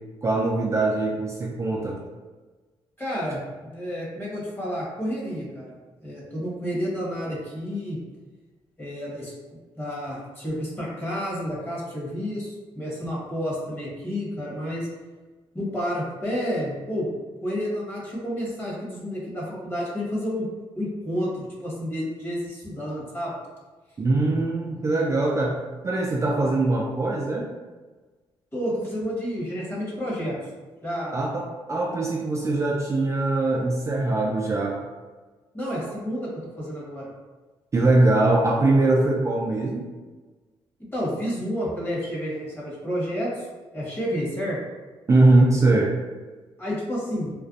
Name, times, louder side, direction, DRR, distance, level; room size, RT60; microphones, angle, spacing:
voice 1, 0.2-2.0 24.0-25.6 25.8-27.5 31.1-34.8 37.7-39.8 45.1-45.9, right 2 dB, 30° right, -2 dB, 0.3 m, -22 dB
voice 2, 3.0-3.4 3.7-5.7 6.0-8.0 8.8-9.3 9.7-14.9 15.5-17.1 17.4-20.5 20.7-23.3 28.5-30.4 30.8-31.2 35.5-37.1 40.8-43.5 43.7-44.6 46.6-47.3, equal, 20° left, -6 dB, 1.1 m, -30 dB
2.4 x 2.1 x 2.5 m, 1.3 s
cardioid pair, 80°, 10 cm